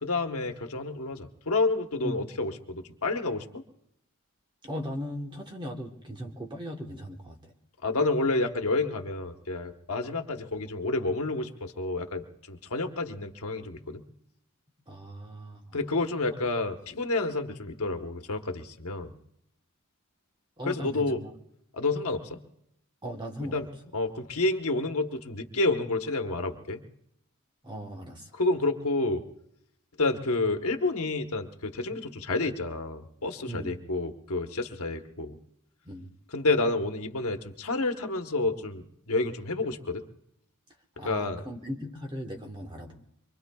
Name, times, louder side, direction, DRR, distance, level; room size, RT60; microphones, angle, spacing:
voice 1, 0.0-3.6 7.8-14.0 15.7-19.1 20.6-21.2 21.7-22.4 23.4-23.7 23.9-26.8 28.3-29.2 30.0-35.4 36.3-40.0 41.0-41.4, left 2 dB, 70° left, 5 dB, 1.2 m, -29 dB
voice 2, 2.0-2.4 4.6-7.5 14.9-15.8 20.6-21.3 23.0-23.6 27.6-28.3 33.4-33.8 35.8-36.1 41.0-43.1, equal, 20° right, 2 dB, 1.2 m, -38 dB
24.5 x 23.5 x 2.3 m, 0.76 s
head